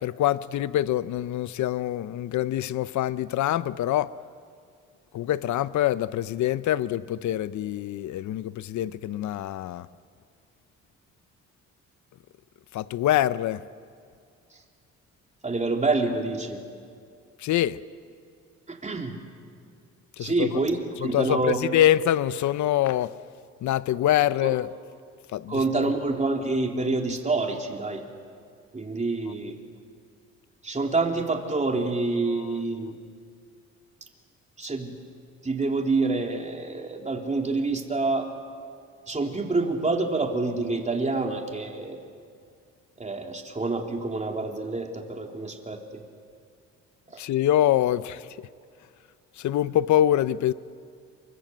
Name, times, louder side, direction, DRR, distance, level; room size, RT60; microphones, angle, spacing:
voice 1, 0.0-4.1 5.1-9.9 12.7-13.6 17.4-17.8 20.2-20.6 21.0-23.1 23.6-24.7 25.3-25.9 32.4-32.5 47.2-48.3 49.4-50.5, left 12 dB, 70° left, 0.8 m, -25 dB
voice 2, 15.4-16.6 18.7-19.2 20.2-21.6 24.4-24.6 25.5-28.0 28.7-29.6 30.6-33.0 34.6-34.9 35.4-38.3 39.1-42.0 43.0-46.0 47.1-47.2, right 3 dB, 25° right, 3.6 m, -27 dB
28.0 x 24.5 x 8.1 m
cardioid pair, 90°, 30 cm